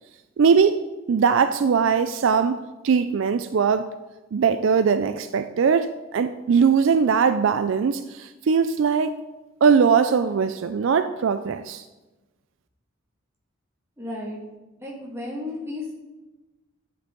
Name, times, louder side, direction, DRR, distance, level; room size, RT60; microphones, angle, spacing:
voice 1, 0.4-0.8 1.1-3.9 4.3-9.2 9.6-11.8, right 6 dB, 60° right, 11 dB, 0.4 m, -20 dB
voice 2, 14.0-14.4 14.8-15.9, left 2 dB, 10° right, -3 dB, 2.0 m, -33 dB
12.0 x 8.1 x 3.8 m, 1.1 s
head